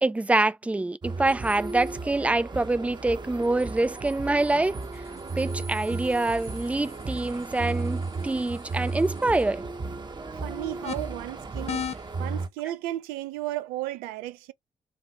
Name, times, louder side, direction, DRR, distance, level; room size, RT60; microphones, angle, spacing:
voice 1, 0.0-4.8 5.4-9.6, right 2 dB, 10° right, 0.4 m, -25 dB
sound 1, 1.0-12.5, right 3 dB, 30° right, 0.9 m, -35 dB
sound 2, 4.8-12.3, left 8 dB, 40° left, 0.6 m, -42 dB
voice 2, 10.3-11.9 12.2-14.5, right 15 dB, 70° right, 0.5 m, -34 dB
4.7 x 2.6 x 3.0 m
figure-of-eight pair, 40°, 16 cm